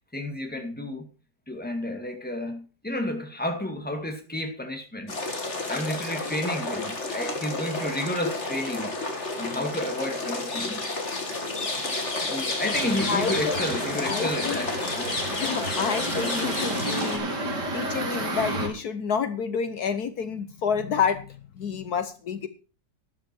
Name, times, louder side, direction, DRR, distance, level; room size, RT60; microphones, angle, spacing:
voice 1, 0.1-1.0 1.5-5.2 5.7-8.9 9.4-10.8 12.2-15.2, left 1 dB, 5° left, 2.1 m, -31 dB
sound 1, 5.1-17.2, left 2 dB, 40° left, 2.6 m, -31 dB
sound 2, 12.7-18.7, right 1 dB, 85° right, 3.9 m, -31 dB
voice 2, 13.1-13.6 14.0-14.6 15.3-17.3 17.7-22.5, left 6 dB, 70° left, 1.4 m, -29 dB
12.5 x 11.0 x 4.6 m
omnidirectional pair, 1.8 m